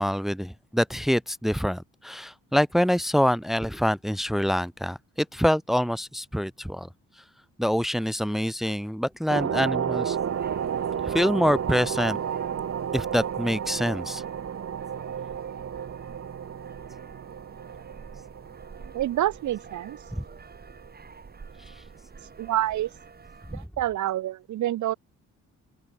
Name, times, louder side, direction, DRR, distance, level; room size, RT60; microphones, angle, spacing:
voice 1, 0.0-5.0 5.3-6.9 7.6-10.2 11.0-12.2 12.9-14.2 20.1-20.2 23.5-23.6, equal, ahead, 1.5 m, -25 dB
sound 1, 9.3-20.3 20.6-20.9, right 8 dB, 55° right, 3.7 m, -32 dB
sound 2, 10.1-23.7, right 5 dB, 30° right, 4.5 m, -48 dB
voice 2, 18.8-20.0 22.4-22.9 23.5-24.9, right 13 dB, 75° right, 1.4 m, -27 dB
open air
cardioid pair, 90°, 30 cm